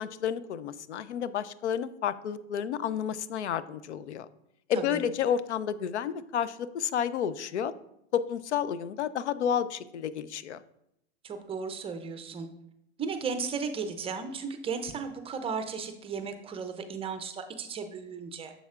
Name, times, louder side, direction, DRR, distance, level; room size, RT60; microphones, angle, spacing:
voice 1, 0.0-4.3 4.7-7.7 8.1-10.6, left 8 dB, 80° left, 15 dB, 0.5 m, -31 dB
voice 2, 11.2-12.5 13.0-18.5, right 5 dB, 15° right, 8 dB, 0.5 m, -35 dB
7.0 x 6.8 x 2.4 m, 0.79 s
hypercardioid pair, 110°, 34 cm